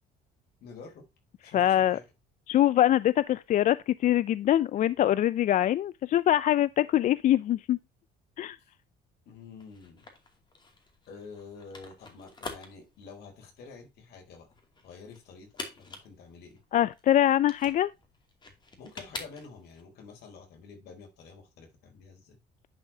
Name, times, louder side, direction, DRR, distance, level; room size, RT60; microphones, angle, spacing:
voice 1, 0.6-1.1 1.4-2.1 8.6-8.7 9.3-10.0 11.1-14.5 14.8-16.6 18.8-22.4, left 4 dB, 75° left, 4.1 m, -48 dB
voice 2, 1.5-2.0 2.5-7.8 8.4-8.6 16.7-17.9, left 12 dB, 50° left, 0.4 m, -24 dB
sound 1, 9.6-19.8, left 3 dB, 25° left, 2.6 m, -46 dB
10.5 x 5.6 x 2.8 m
cardioid pair, 110°, 17 cm